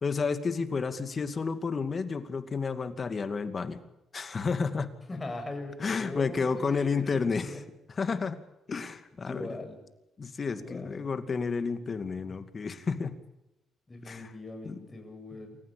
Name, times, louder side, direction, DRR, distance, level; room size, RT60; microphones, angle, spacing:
voice 1, 0.0-3.8 4.1-5.0 5.8-7.5 8.0-8.4 8.7-9.5 10.2-13.1 14.1-14.3 14.6-14.8, left 5 dB, 40° left, 9 dB, 2.4 m, -31 dB
voice 2, 5.1-7.6 9.1-9.8 10.5-11.2 13.9-15.6, left 2 dB, 25° left, 4 dB, 7.6 m, -41 dB
28.0 x 15.0 x 8.6 m, 0.89 s
cardioid pair, 90°, 0 cm